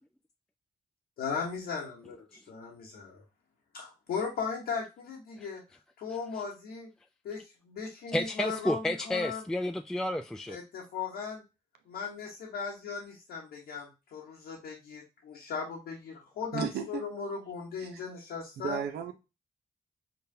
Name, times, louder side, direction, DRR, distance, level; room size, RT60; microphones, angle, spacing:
voice 1, 1.2-3.2 3.7-5.6 6.0-6.9 7.2-9.4 10.5-11.4 11.9-18.8, left 5 dB, 90° left, 1.0 m, -37 dB
voice 2, 8.1-10.6, left 1 dB, 5° left, 0.3 m, -31 dB
voice 3, 16.5-17.0 17.8-18.0 18.6-19.1, right 7 dB, 85° right, 0.6 m, -34 dB
5.3 x 2.2 x 2.7 m
supercardioid pair, 45°, 16 cm